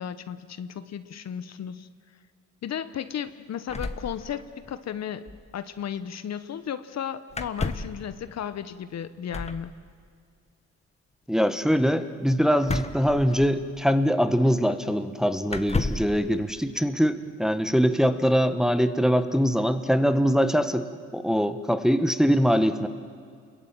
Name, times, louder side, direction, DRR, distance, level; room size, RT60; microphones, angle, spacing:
voice 1, 0.0-1.9 2.6-5.2 5.5-9.7, left 9 dB, 60° left, 12 dB, 1.1 m, -34 dB
sound 1, 3.7-4.8 5.0-5.1 5.3-5.5 7.3-8.0 9.3-9.7 12.6-13.8 14.7-14.8 15.5-16.2, left 3 dB, 20° left, 1.5 m, -31 dB
voice 2, 11.3-20.9 21.1-22.9, equal, ahead, 9 dB, 1.3 m, -23 dB
29.0 x 22.0 x 9.0 m, 2.1 s
cardioid pair, 90°, 30 cm